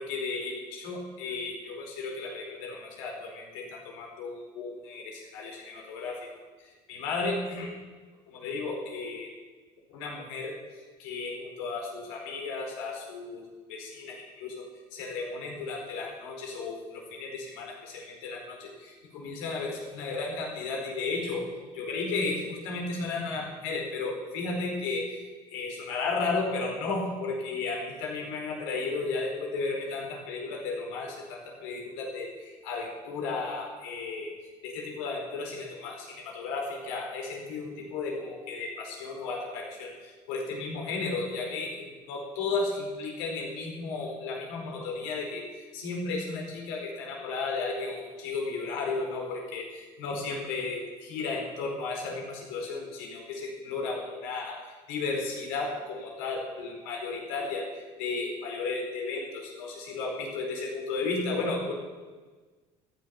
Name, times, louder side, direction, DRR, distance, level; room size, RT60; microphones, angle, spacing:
voice 1, 0.0-6.3 6.6-7.8 8.3-9.3 9.9-13.4 13.7-21.5 21.7-34.3 34.6-61.7, left 3 dB, 85° left, 0 dB, 4.6 m, -34 dB
14.0 x 10.5 x 7.1 m, 1.4 s
supercardioid pair, 85°, 15 cm